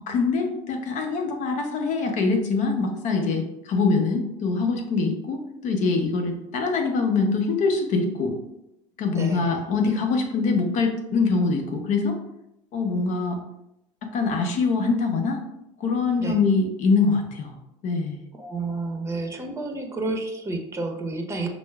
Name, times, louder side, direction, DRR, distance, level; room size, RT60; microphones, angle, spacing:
voice 1, 0.1-8.3 9.0-12.2 12.7-13.4 14.1-15.4 15.8-17.6 17.8-18.2, left 4 dB, 55° left, 4 dB, 0.7 m, -24 dB
voice 2, 9.1-9.6 16.2-16.4 18.4-21.5, right 3 dB, 15° right, 3 dB, 0.7 m, -30 dB
6.0 x 2.0 x 2.3 m, 0.86 s
hypercardioid pair, 65°, 16 cm